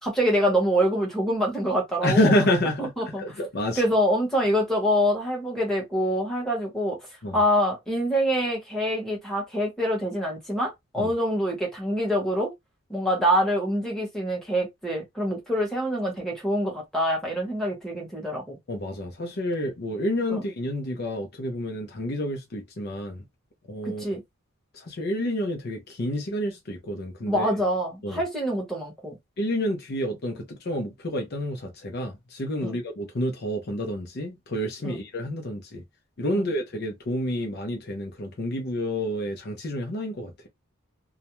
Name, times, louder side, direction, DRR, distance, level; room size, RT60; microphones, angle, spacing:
voice 1, 0.0-2.3 2.8-3.2 3.8-7.0 7.3-12.5 12.9-18.6 20.3-20.4 23.8-24.2 27.3-29.2 32.6-32.8 34.8-35.0 36.3-36.5, equal, ahead, 1.0 m, -25 dB
voice 2, 2.0-3.8 7.2-7.4 11.0-11.1 18.7-23.2 23.7-24.2 24.7-27.5 28.0-28.2 29.4-35.8 36.2-40.3, left 1 dB, 50° left, 0.6 m, -29 dB
2.4 x 2.1 x 2.9 m
head